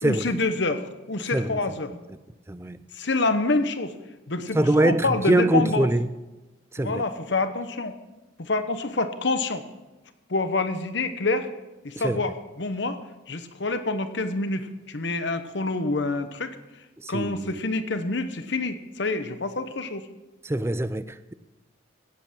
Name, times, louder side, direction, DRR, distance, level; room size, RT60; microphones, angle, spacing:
voice 1, 0.0-1.9 2.9-3.9 4.3-5.9 6.8-7.9 8.4-9.6 10.3-11.5 11.8-13.0 13.3-16.6 17.1-20.1, left 3 dB, 60° left, 1.0 m, -27 dB
voice 2, 4.6-6.1 6.7-7.0 12.0-12.2 17.0-17.6 20.4-21.3, right 1 dB, 10° right, 0.4 m, -23 dB
16.0 x 7.9 x 6.1 m
head